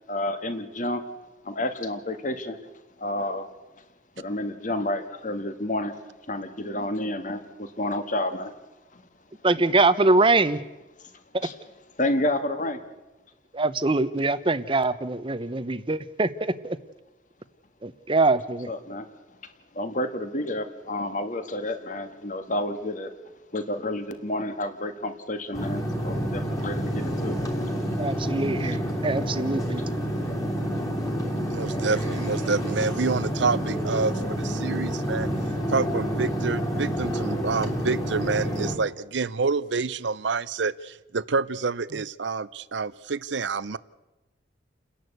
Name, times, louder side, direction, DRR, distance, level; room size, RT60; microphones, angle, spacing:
voice 1, 0.1-1.0 1.4-2.6 3.0-3.5 4.2-6.0 6.3-8.5 8.9-9.0 11.4-11.5 12.0-12.8 18.7-19.1 19.4-23.1 23.5-27.4 28.2-28.3, left 1 dB, 40° left, 8 dB, 1.7 m, -30 dB
voice 2, 9.4-10.6 13.5-16.8 17.8-18.7 28.0-29.8, right 3 dB, 25° right, 14 dB, 0.8 m, -23 dB
sound 1, 25.5-38.8, equal, 20° left, 3.2 m, -28 dB
voice 3, 31.5-35.3 35.7-43.8, right 4 dB, 70° right, 18 dB, 0.6 m, -28 dB
30.0 x 11.0 x 8.1 m, 1.0 s
head